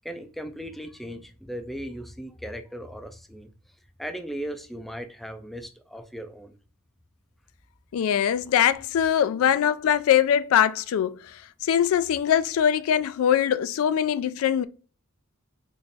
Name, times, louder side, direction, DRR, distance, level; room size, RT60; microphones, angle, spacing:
voice 1, 0.0-3.5 4.0-6.6, equal, ahead, 0.3 m, -37 dB
voice 2, 7.9-11.2 11.6-14.6, left 9 dB, 80° left, 0.3 m, -22 dB
4.1 x 2.4 x 3.3 m
head